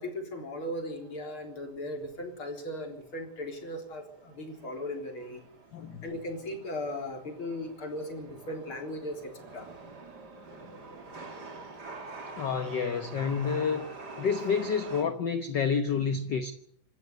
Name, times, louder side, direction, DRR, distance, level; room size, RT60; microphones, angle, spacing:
voice 1, 0.0-5.4 6.0-9.7, left 1 dB, 45° left, 4.5 m, -37 dB
Chatter / Subway metro underground, 0.8-15.0, right 3 dB, 35° right, 3.5 m, -47 dB
voice 2, 5.7-6.0 12.4-13.9 14.2-16.5, left 6 dB, 60° left, 1.1 m, -29 dB
26.5 x 13.5 x 8.2 m
omnidirectional pair, 3.4 m